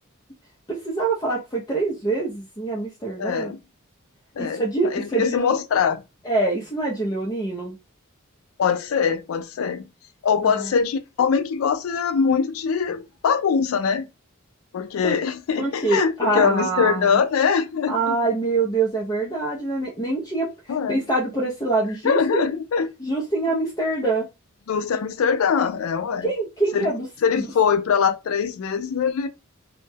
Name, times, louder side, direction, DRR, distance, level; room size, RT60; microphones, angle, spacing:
voice 1, 0.7-3.5 4.4-5.6 6.2-7.8 10.4-10.7 15.0-15.2 15.6-17.2 17.9-20.5 20.9-22.4 23.0-24.3 26.2-27.1 27.3-27.5, right 3 dB, 20° left, 0.5 m, -25 dB
voice 2, 3.2-3.6 4.4-4.6 4.9-6.0 8.6-9.8 10.2-14.1 14.7-18.2 20.7-21.0 22.0-22.9 24.7-26.3 26.7-26.9 27.2-29.3, left 6 dB, 75° left, 0.4 m, -22 dB
2.1 x 2.1 x 3.3 m
head